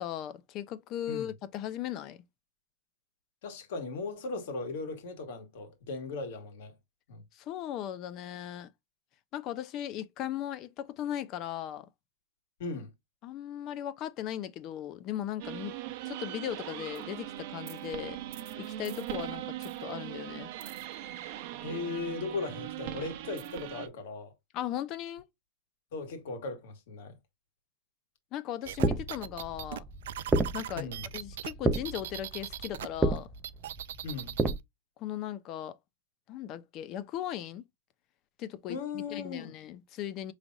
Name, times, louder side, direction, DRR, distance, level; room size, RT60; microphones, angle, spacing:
voice 1, 0.0-2.2 7.3-8.7 9.3-11.9 13.2-15.7 16.0-18.2 18.6-20.5 24.5-25.2 28.3-29.8 30.5-33.3 35.0-35.8 36.3-37.6 38.4-40.3, left 11 dB, 35° left, 0.6 m, -37 dB
voice 2, 3.4-6.7 7.1-7.2 12.6-12.9 21.6-24.3 25.9-27.2 30.7-31.1 34.0-34.3 38.7-39.5, left 4 dB, 65° left, 1.7 m, -37 dB
sound 1, 15.4-23.9, right 13 dB, 50° right, 0.7 m, -40 dB
sound 2, 28.7-34.6, right 2 dB, 10° right, 0.5 m, -32 dB
sound 3, 28.7-32.9 33.2-34.6, right 12 dB, 75° right, 0.4 m, -39 dB
5.1 x 3.3 x 2.4 m
supercardioid pair, 155°, 0 cm